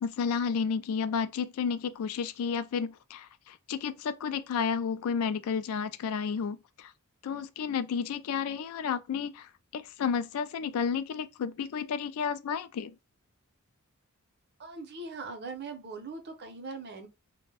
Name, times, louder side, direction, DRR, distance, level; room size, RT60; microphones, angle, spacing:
voice 1, 0.0-6.9 7.2-13.0, left 6 dB, 70° left, 0.3 m, -32 dB
voice 2, 14.6-17.1, right 3 dB, 50° right, 0.6 m, -40 dB
2.5 x 2.1 x 3.2 m
head